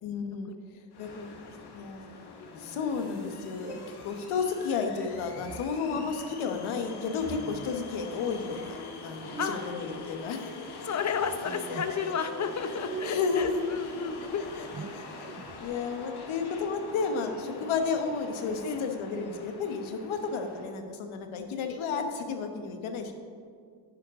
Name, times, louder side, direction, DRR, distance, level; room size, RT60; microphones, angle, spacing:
voice 1, 0.0-0.5 1.0-1.1 1.7-3.8 4.0-8.8 9.0-10.5 11.7-12.0 13.0-13.6 14.6-14.7 14.9-15.3 15.6-23.1, left 5 dB, 80° left, 6 dB, 1.3 m, -32 dB
sound 1, 0.9-20.8, left 3 dB, 55° left, 1.2 m, -44 dB
voice 2, 1.2-1.5 2.1-2.8 5.9-6.1 9.4-9.6 10.8-14.4 18.6-18.9, left 6 dB, 35° left, 9 dB, 0.8 m, -33 dB
sound 2, 3.5-4.1 5.1-5.8 7.2-7.8 9.2-9.9 11.2-11.9 12.7-13.5 14.5-15.7, right 5 dB, 25° right, 0.4 m, -43 dB
10.0 x 9.7 x 3.7 m, 2.1 s
cardioid pair, 105°, 47 cm